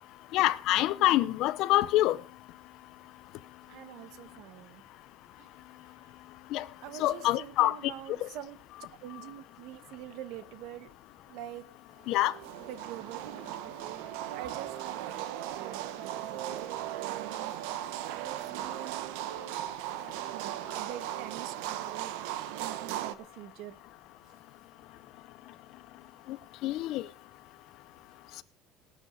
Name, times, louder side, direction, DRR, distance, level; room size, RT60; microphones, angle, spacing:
voice 1, 0.3-2.2 6.5-6.6 7.0-7.8 8.2-8.3 12.1-12.3 26.6-27.0, left 15 dB, 50° left, 0.8 m, -25 dB
voice 2, 3.7-4.8 5.4-5.5 6.8-8.6 9.0-10.9 11.3-11.7 12.7-17.5 18.1-19.0 20.3-22.1 22.6-23.8, right 12 dB, 60° right, 1.1 m, -45 dB
sound 1, 12.1-23.2, right 13 dB, 85° right, 1.1 m, -37 dB
18.5 x 8.8 x 5.0 m
cardioid pair, 170°, 0 cm